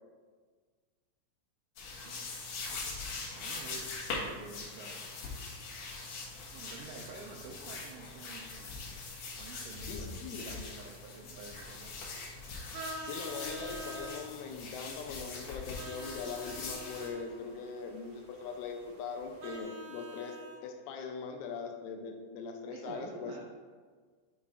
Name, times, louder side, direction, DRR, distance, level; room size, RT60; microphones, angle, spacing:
sound 1, 1.8-17.1, left 3 dB, 65° left, 2.3 m, -42 dB
voice 1, 2.7-5.1 6.5-9.0 9.4-12.1 22.7-23.4, right 4 dB, 85° right, 0 dB, 2.5 m, -49 dB
voice 2, 9.8-10.5 13.0-20.4 20.6-23.3, left 5 dB, 80° left, 3 dB, 3.0 m, -41 dB
sound 2, 11.6-19.6, equal, 50° right, 2.5 m, -59 dB
Vehicle horn car horn honking, 12.7-14.3 15.8-17.3 19.4-20.6, right 1 dB, 65° right, 2.7 m, -45 dB
9.4 x 5.7 x 2.5 m, 1.5 s
omnidirectional pair, 5.7 m